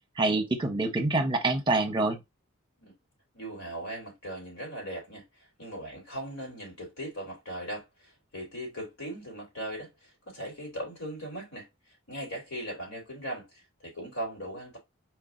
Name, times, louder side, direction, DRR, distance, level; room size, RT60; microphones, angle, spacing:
voice 1, 0.2-2.2, right 2 dB, 25° right, 1.0 m, -26 dB
voice 2, 3.3-5.2 5.6-11.7 12.1-14.8, right 1 dB, 80° left, 3.4 m, -39 dB
4.6 x 2.7 x 3.7 m
head